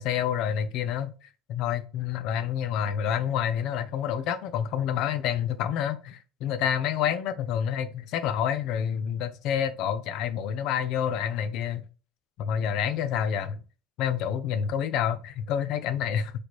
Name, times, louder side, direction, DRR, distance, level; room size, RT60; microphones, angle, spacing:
voice 1, 0.0-11.9 12.4-13.6 14.0-16.3, left 9 dB, 60° left, 0.5 m, -28 dB
4.1 x 3.2 x 3.0 m
cardioid pair, 150°, 0 cm